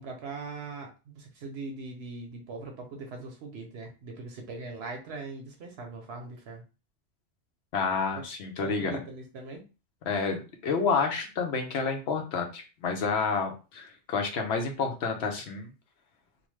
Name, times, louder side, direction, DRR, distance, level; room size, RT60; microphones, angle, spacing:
voice 1, 0.0-6.6 8.1-8.2 8.6-9.6, right 3 dB, 65° right, 3 dB, 0.8 m, -40 dB
voice 2, 7.7-9.0 10.0-15.7, left 5 dB, 65° left, 3 dB, 0.9 m, -29 dB
2.9 x 2.1 x 3.1 m, 0.31 s
omnidirectional pair, 1.2 m